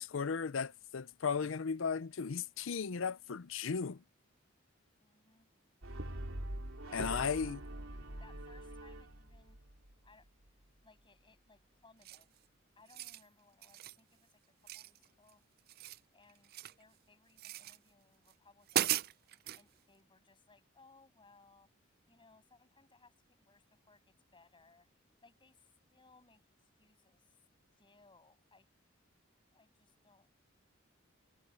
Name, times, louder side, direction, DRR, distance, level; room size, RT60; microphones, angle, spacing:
voice 1, 0.0-4.0 6.9-7.6, left 6 dB, 70° left, 0.6 m, -36 dB
voice 2, 5.0-5.5 6.8-7.3 8.2-9.6 10.0-10.3 10.8-12.4 12.8-14.3 14.7-15.5 16.1-16.5 16.8-19.0 19.5-21.7 22.1-24.9 25.2-27.4 27.8-28.7 29.5-30.3, left 3 dB, 25° left, 7.6 m, -65 dB
Brass instrument, 5.8-10.1, right 1 dB, 85° right, 3.0 m, -44 dB
sound 1, 12.0-12.4 12.8-13.2 13.6-14.0 14.7-15.3 15.6-16.8 17.4-17.8 18.3-18.4 18.7-19.6, right 12 dB, 50° right, 0.4 m, -37 dB
head